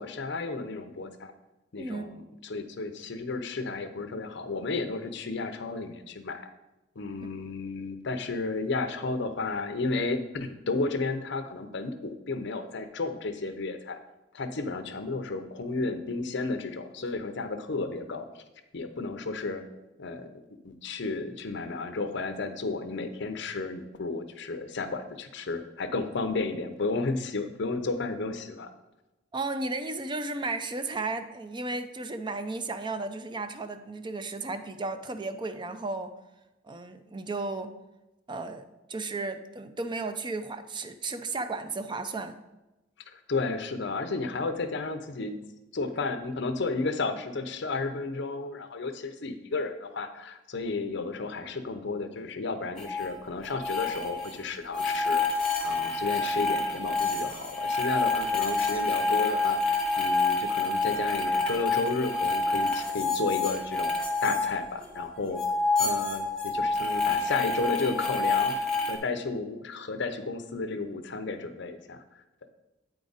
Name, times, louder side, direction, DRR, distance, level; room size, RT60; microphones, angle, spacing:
voice 1, 0.0-1.3 1.7-2.1 2.4-6.5 7.0-14.0 14.3-18.4 18.7-19.6 20.0-28.7 43.1-45.4 45.7-55.2 55.6-63.9 64.2-65.4 65.8-68.6 68.9-72.0, left 3 dB, 65° left, 8 dB, 0.7 m, -33 dB
voice 2, 29.3-36.1 36.6-37.7 38.3-38.6 38.9-42.3, right 3 dB, 25° right, 8 dB, 0.5 m, -34 dB
sound 1, 52.8-53.1 53.4-54.3 54.7-65.1 65.3-69.0, left 3 dB, 5° left, 1.0 m, -28 dB
8.8 x 4.9 x 4.0 m, 1.0 s
head